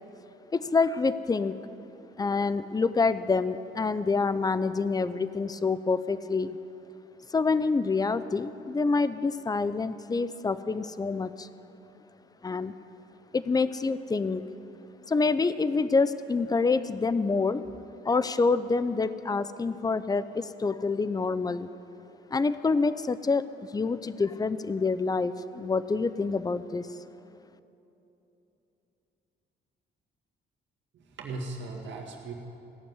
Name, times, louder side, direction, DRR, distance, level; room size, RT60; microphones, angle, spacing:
voice 1, 0.5-1.6 2.2-6.6 7.3-11.5 12.4-12.7 13.3-14.5 15.1-17.6 18.0-21.7 22.3-23.4 23.7-26.9, left 4 dB, 20° left, 14 dB, 0.5 m, -27 dB
voice 2, 30.9-32.3, right 3 dB, 65° right, 0 dB, 2.0 m, -38 dB
16.5 x 7.0 x 9.6 m, 3.0 s
cardioid pair, 90°, 20 cm